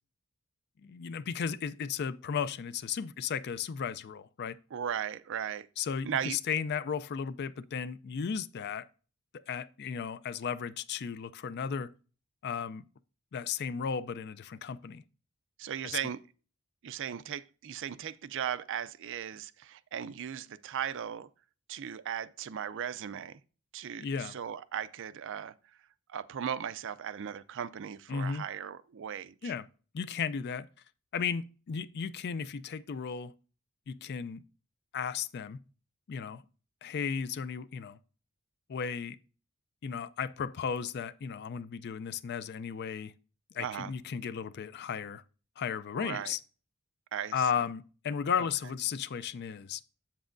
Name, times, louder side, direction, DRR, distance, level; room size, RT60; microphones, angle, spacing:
voice 1, 0.8-4.6 5.8-8.8 9.5-11.9 12.4-12.8 13.3-15.0 15.8-16.0 24.0-24.4 28.1-28.4 29.4-29.7 29.9-30.7 31.1-33.3 33.9-34.4 34.9-35.6 36.1-36.4 36.8-38.0 38.7-39.2 39.8-43.1 43.5-45.2 45.6-46.4 47.3-49.8, left 6 dB, 50° left, 0.4 m, -35 dB
voice 2, 4.7-5.7 6.0-6.4 15.6-16.2 16.8-21.3 21.7-23.4 23.7-25.5 26.1-29.5 43.6-43.9 45.9-46.3 47.1-47.3, right 8 dB, 60° right, 0.4 m, -37 dB
7.8 x 7.3 x 2.5 m
head